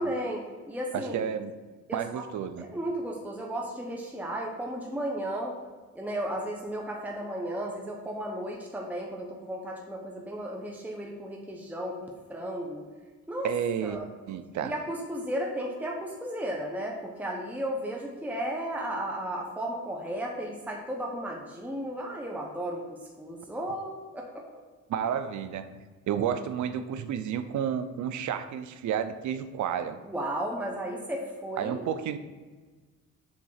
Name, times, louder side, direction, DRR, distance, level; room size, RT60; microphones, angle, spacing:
voice 1, 0.0-1.2 1.9-2.2 2.6-5.5 5.9-12.9 13.3-13.5 13.8-14.1 14.6-24.5 30.0-31.8, right 1 dB, 5° right, -1 dB, 1.0 m, -34 dB
voice 2, 0.9-1.5 1.9-2.7 13.4-14.0 14.3-14.7 24.9-25.8 26.1-30.0 31.6-32.2, right 8 dB, 70° right, 11 dB, 0.6 m, -31 dB
7.3 x 3.6 x 6.4 m, 1.4 s
cardioid pair, 100°, 30 cm